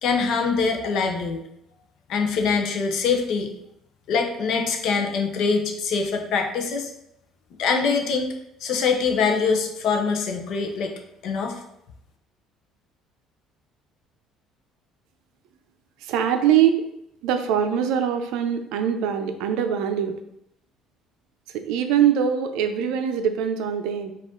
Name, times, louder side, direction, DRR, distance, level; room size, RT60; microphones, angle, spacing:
voice 1, 0.0-1.4 2.1-3.5 4.1-6.9 7.6-8.3 8.6-11.6, left 5 dB, 50° left, 3 dB, 0.6 m, -24 dB
voice 2, 16.0-16.9 17.2-20.2 21.5-24.1, right 9 dB, 80° right, 7 dB, 0.4 m, -23 dB
5.0 x 2.5 x 3.6 m, 0.79 s
cardioid pair, 175°, 0 cm